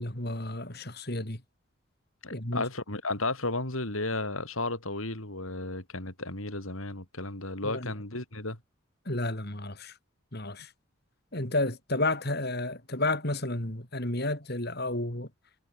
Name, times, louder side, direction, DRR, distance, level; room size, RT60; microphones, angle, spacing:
voice 1, 0.0-1.4 2.3-2.6 7.6-7.9 9.1-9.9 10.3-10.7 11.3-15.3, left 2 dB, 50° left, 4.4 m, -31 dB
voice 2, 2.2-8.6, left 2 dB, 75° left, 6.2 m, -33 dB
head